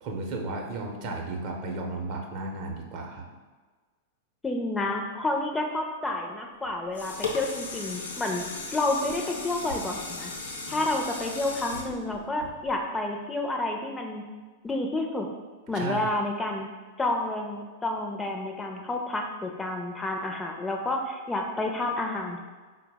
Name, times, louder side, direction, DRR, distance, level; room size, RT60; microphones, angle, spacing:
voice 1, 0.0-3.3 10.7-10.9 15.7-16.1, right 2 dB, 45° right, 1 dB, 0.6 m, -34 dB
voice 2, 4.4-8.4 8.7-10.3 10.7-14.2 14.6-15.3 15.7-16.7 17.0-22.4, left 2 dB, 15° left, 2 dB, 0.4 m, -30 dB
sound 1, 6.6-13.0 13.5-13.6, left 3 dB, 80° left, 0.6 m, -36 dB
4.4 x 2.0 x 3.4 m, 1.4 s
figure-of-eight pair, 100°, 0 cm